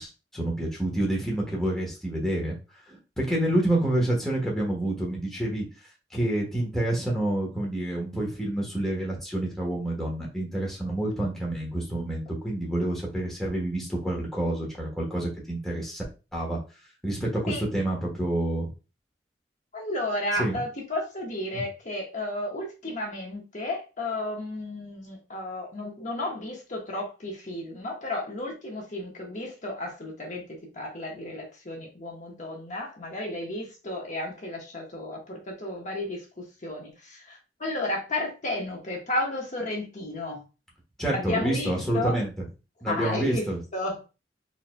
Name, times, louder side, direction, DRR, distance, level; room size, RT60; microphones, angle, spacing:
voice 1, 0.0-2.6 2.9-5.7 6.1-16.0 16.3-16.6 17.0-18.7 20.3-20.6 21.5-21.6 41.0-42.3 42.8-43.6, right 1 dB, ahead, -3 dB, 1.1 m, -28 dB
voice 2, 19.7-30.4 30.7-36.2 36.6-40.4 41.1-42.2 42.8-43.4 43.7-44.1, left 1 dB, 45° left, 0 dB, 1.1 m, -33 dB
4.2 x 3.8 x 2.2 m, 0.30 s
head